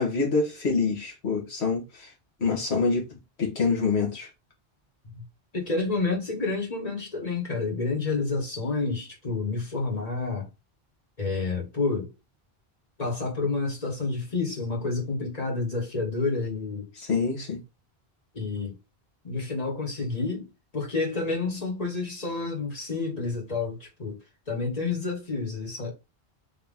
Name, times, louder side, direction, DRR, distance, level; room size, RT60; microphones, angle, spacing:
voice 1, 0.0-2.1 2.4-4.3 17.0-17.6, left 4 dB, 85° left, 1.7 m, -26 dB
voice 2, 5.5-10.5 11.2-12.1 13.0-16.9 18.3-18.8 19.2-20.5 20.7-24.2 24.5-25.9, left 3 dB, 40° left, 1.6 m, -29 dB
3.8 x 2.9 x 3.6 m
omnidirectional pair, 1.1 m